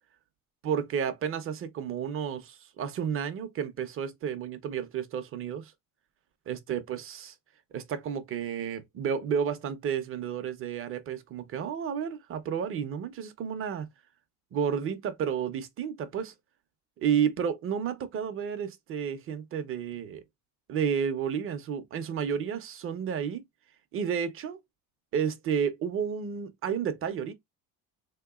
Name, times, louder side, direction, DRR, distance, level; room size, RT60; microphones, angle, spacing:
voice 1, 0.6-5.7 6.5-7.3 7.7-13.9 14.5-16.3 17.0-20.2 20.7-23.4 23.9-24.6 25.1-27.3, right 7 dB, 35° right, 0.5 m, -31 dB
3.4 x 2.8 x 2.3 m
cardioid pair, 160°, 39 cm